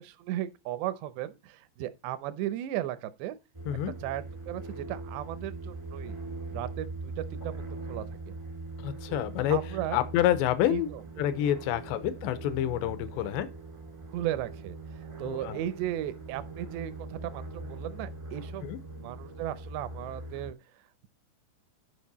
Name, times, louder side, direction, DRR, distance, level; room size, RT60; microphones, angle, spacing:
voice 1, 0.0-3.4 4.0-6.2 6.5-8.3 9.1-9.2 9.5-10.0 10.7-11.0 14.1-14.8 15.2-18.7 19.0-20.6, right 13 dB, 80° right, 2.9 m, -36 dB
sound 1, 3.5-20.5, right 3 dB, 30° right, 0.5 m, -41 dB
voice 2, 8.8-9.6 9.9-10.9 11.2-13.5 15.2-15.6 18.6-18.8, left 12 dB, 90° left, 2.9 m, -28 dB
12.0 x 5.4 x 4.1 m
omnidirectional pair, 5.0 m